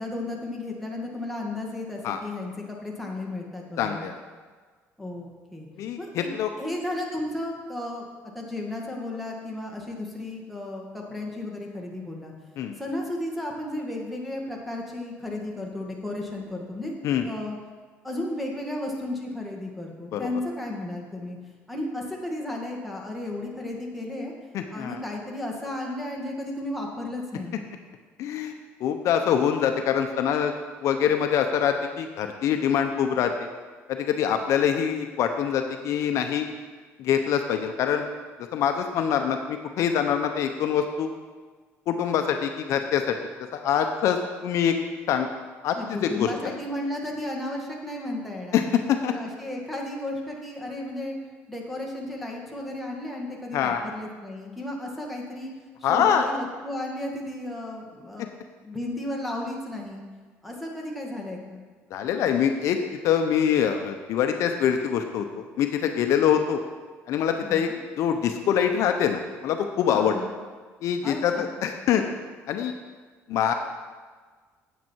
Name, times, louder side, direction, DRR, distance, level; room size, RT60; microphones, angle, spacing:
voice 1, 0.0-4.1 5.0-5.7 6.0-6.3 6.6-8.1 8.3-12.3 12.8-16.9 17.3-17.6 18.0-21.4 21.7-24.3 24.7-27.6 45.7-48.6 49.1-51.1 51.5-55.5 55.9-58.3 58.6-60.0 60.4-61.6 67.4-67.8 69.9-70.3 71.0-71.5, left 1 dB, ahead, -1 dB, 1.9 m, -34 dB
voice 2, 3.8-4.2 5.8-6.5 12.6-12.8 17.0-17.3 20.1-20.3 24.5-25.0 28.2-28.5 28.8-30.5 30.8-33.3 33.9-36.5 37.0-38.1 38.5-41.1 41.9-43.2 43.5-44.7 45.1-45.3 45.6-46.5 48.5-48.6 48.9-49.1 53.5-53.8 55.8-56.3 61.9-62.8 63.0-66.6 67.1-67.7 68.0-70.2 70.8-72.0 72.5-72.7 73.3-73.5, left 8 dB, 65° left, 6 dB, 0.7 m, -24 dB
9.1 x 8.4 x 4.6 m, 1.5 s
cardioid pair, 120°, 6 cm